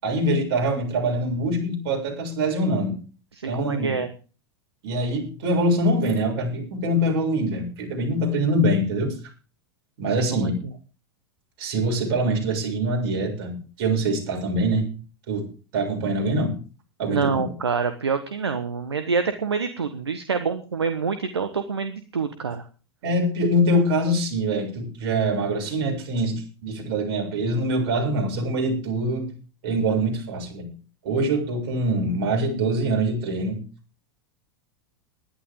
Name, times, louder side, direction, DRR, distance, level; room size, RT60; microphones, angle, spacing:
voice 1, 0.0-3.0 3.5-4.0 4.8-9.2 10.0-10.6 11.6-14.9 15.3-15.5 15.7-16.6 17.0-17.4 23.0-29.3 29.6-30.7 31.0-33.6, right 1 dB, 55° right, 1 dB, 7.2 m, -24 dB
voice 2, 3.4-4.1 10.2-10.5 17.1-22.6, right 5 dB, 80° right, 9 dB, 1.3 m, -26 dB
20.0 x 11.5 x 3.7 m, 0.37 s
figure-of-eight pair, 90°, 14 cm